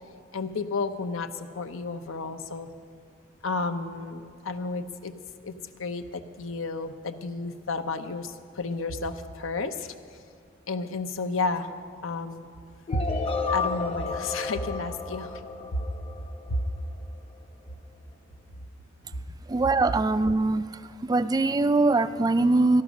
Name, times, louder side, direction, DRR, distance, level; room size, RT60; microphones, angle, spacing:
voice 1, 0.3-2.7 3.4-5.1 5.4-9.9 10.7-11.7 12.0-12.5 12.9-13.1 13.5-15.4 15.7-15.8 16.5-16.6, left 3 dB, 90° left, 8 dB, 0.8 m, -31 dB
sound 1, 12.9-16.8, left 4 dB, 30° left, 0.8 m, -32 dB
voice 2, 19.5-20.6 21.1-22.8, right 3 dB, 20° right, 13 dB, 0.3 m, -22 dB
14.0 x 12.0 x 6.2 m, 2.2 s
head